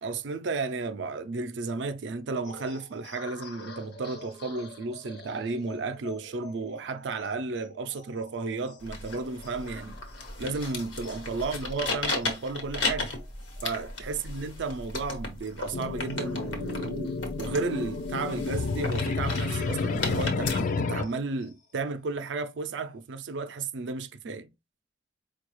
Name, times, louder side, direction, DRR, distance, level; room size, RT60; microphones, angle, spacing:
voice 1, 0.0-10.0 10.4-13.1 13.6-24.5, right 3 dB, 80° right, 0.5 m, -33 dB
sound 1, 2.4-19.3 19.7-19.8 20.2-21.8, left 3 dB, 60° left, 0.8 m, -50 dB
sound 2, 8.8-20.6, left 3 dB, 85° left, 1.1 m, -35 dB
sound 3, 15.7-21.0, left 4 dB, 45° left, 0.3 m, -30 dB
4.6 x 2.3 x 3.0 m
head